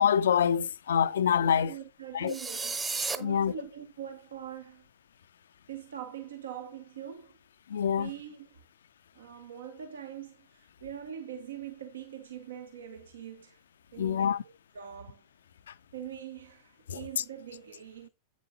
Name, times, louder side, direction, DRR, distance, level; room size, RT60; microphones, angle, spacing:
voice 1, 0.0-1.7 2.1-2.3 3.2-3.5 7.7-8.1 14.0-14.4 16.9-17.2, left 8 dB, 65° left, 0.4 m, -26 dB
voice 2, 1.4-4.9 5.7-7.3 8.0-8.5 9.2-13.6 13.9-14.4 14.7-15.2 15.9-18.1, right 9 dB, 65° right, 0.8 m, -43 dB
sound 1, 2.3-3.2, right 4 dB, 15° right, 0.9 m, -32 dB
8.5 x 7.1 x 2.6 m
figure-of-eight pair, 90°, 0 cm